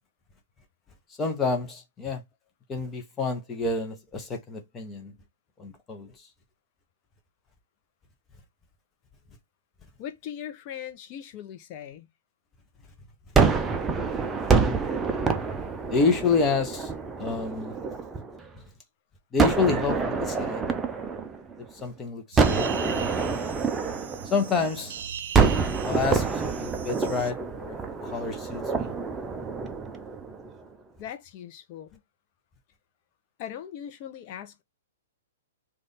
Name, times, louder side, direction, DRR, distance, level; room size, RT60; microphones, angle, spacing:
voice 1, 1.2-2.2 2.7-5.1 5.6-6.1 14.4-14.5 14.8-14.9 15.9-16.9 17.2-17.8 19.3-20.7 21.8-23.2 24.3-25.0 25.8-27.8 28.0-28.9, left 4 dB, 15° left, 1.0 m, -28 dB
voice 2, 10.0-12.1 31.0-32.0 33.4-34.6, left 10 dB, 40° left, 0.8 m, -39 dB
Gunshot gunfire, 13.4-18.5 19.4-21.8 22.4-24.8 25.3-30.6, right 5 dB, 15° right, 0.6 m, -26 dB
sound 1, 22.3-27.3, right 8 dB, 65° right, 0.5 m, -40 dB
3.3 x 2.6 x 4.0 m
hypercardioid pair, 130°, 0 cm